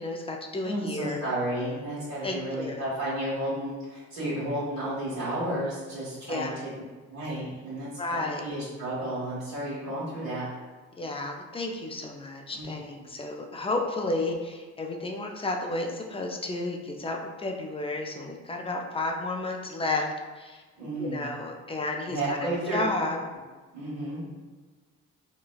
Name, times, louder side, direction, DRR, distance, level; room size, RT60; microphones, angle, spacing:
voice 1, 0.0-1.2 2.2-2.9 6.3-6.6 8.0-8.4 11.0-20.1 20.4-20.6 21.0-23.2, left 2 dB, 20° left, 2 dB, 0.4 m, -32 dB
voice 2, 0.6-6.7 7.1-10.4 12.5-12.7 20.8-21.2 22.1-22.8 23.7-24.2, right 1 dB, 60° right, -11 dB, 1.2 m, -32 dB
3.9 x 2.2 x 2.3 m, 1.3 s
cardioid pair, 90°, 30 cm